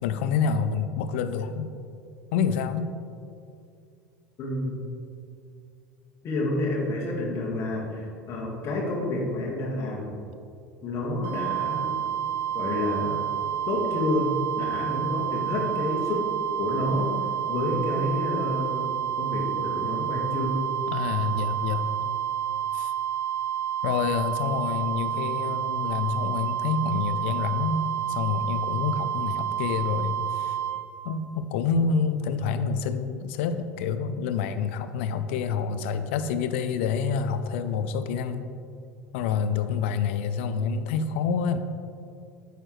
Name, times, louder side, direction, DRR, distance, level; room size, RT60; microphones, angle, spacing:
voice 1, 0.0-1.7 2.3-2.9 20.9-21.9 22.7-22.9 23.8-30.6 31.0-38.5 39.1-41.6, left 6 dB, 65° left, 11 dB, 0.5 m, -27 dB
voice 2, 4.4-4.8 6.2-10.1 10.8-12.0 12.5-13.3 13.7-16.3 16.6-17.1 17.5-20.6, left 1 dB, 45° left, -2 dB, 1.8 m, -29 dB
sound 1, 11.2-30.8, right 10 dB, 45° right, 1.7 m, -29 dB
8.8 x 6.5 x 3.3 m, 2.4 s
hypercardioid pair, 75°, 7 cm